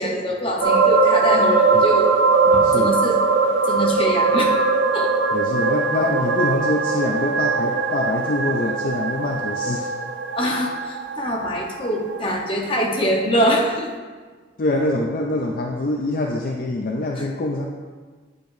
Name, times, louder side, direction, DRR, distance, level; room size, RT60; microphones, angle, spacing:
voice 1, 0.0-2.1 2.4-3.2 3.7-4.6 4.9-5.1 10.3-13.9 17.2-17.3, equal, 30° left, -1 dB, 0.9 m, -24 dB
sound 1, 0.6-12.4 12.8-12.9, right 4 dB, 80° right, 0.4 m, -20 dB
voice 2, 5.3-9.9 14.6-17.7, left 2 dB, 50° left, 0 dB, 0.5 m, -24 dB
9.0 x 5.0 x 2.6 m, 1.5 s
head